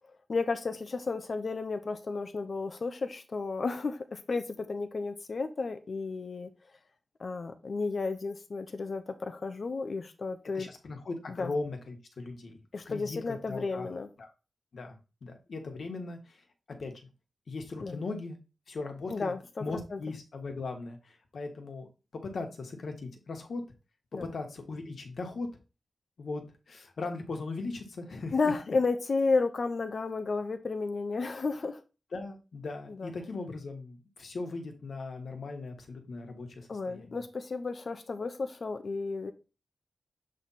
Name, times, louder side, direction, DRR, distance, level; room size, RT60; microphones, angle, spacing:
voice 1, 0.3-6.5 7.2-10.7 11.3-11.5 12.7-14.1 17.8-18.0 19.1-19.6 19.9-20.0 24.1-24.3 28.3-31.8 32.9-33.1 36.7-39.3, left 4 dB, 50° left, 0.7 m, -32 dB
voice 2, 10.5-13.9 14.2-14.3 14.7-16.4 16.8-17.0 17.5-18.4 18.7-19.3 19.6-21.9 22.2-23.6 24.2-25.5 26.2-28.3 32.1-37.2, left 3 dB, 65° left, 1.4 m, -39 dB
7.6 x 3.3 x 4.1 m
wide cardioid pair, 155°, 0 cm